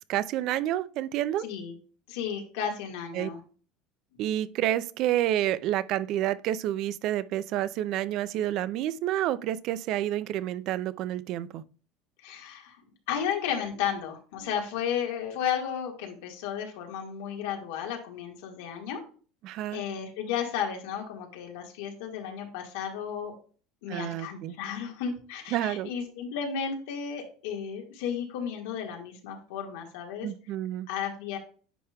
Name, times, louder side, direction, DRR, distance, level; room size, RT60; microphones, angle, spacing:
voice 1, 0.1-1.4 3.1-3.3 4.2-11.6 19.4-19.8 23.9-24.6 25.5-25.9 30.2-30.9, right 13 dB, 45° right, 0.4 m, -29 dB
voice 2, 1.4-1.7 2.1-3.4 12.2-12.8 13.1-19.0 19.7-23.3 23.8-30.3 30.9-31.4, left 8 dB, 90° left, 1.7 m, -33 dB
9.9 x 5.0 x 2.3 m
cardioid pair, 165°, 0 cm